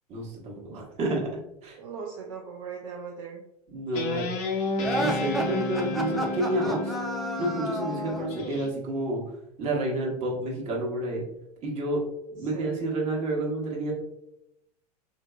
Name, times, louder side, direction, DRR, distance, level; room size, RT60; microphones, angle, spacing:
voice 1, 0.1-1.3 1.6-1.8 3.7-4.3 5.0-6.9 7.4-9.2 9.6-11.2 11.6-12.0 12.3-13.9, right 1 dB, 35° right, -3 dB, 1.2 m, -29 dB
voice 2, 1.8-3.4 12.4-12.9, right 6 dB, 55° right, 1 dB, 0.5 m, -39 dB
Guitar, 3.9-8.7, left 3 dB, 45° left, 0.6 m, -31 dB
sound 1, 4.8-8.3, right 1 dB, ahead, 0.3 m, -32 dB
3.8 x 2.5 x 2.3 m, 0.83 s
figure-of-eight pair, 90°, 20 cm